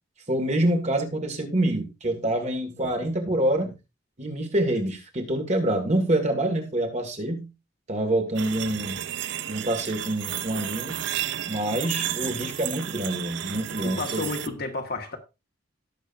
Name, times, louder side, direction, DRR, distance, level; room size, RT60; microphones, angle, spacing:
voice 1, 0.3-3.8 4.2-7.5 7.9-9.1 9.4-11.0 11.5-14.3, right 1 dB, 35° right, 2.2 m, -26 dB
sound 1, 8.3-14.5, right 11 dB, 60° right, 0.5 m, -32 dB
voice 2, 13.8-15.2, left 3 dB, 50° left, 1.7 m, -31 dB
18.0 x 6.6 x 2.6 m
head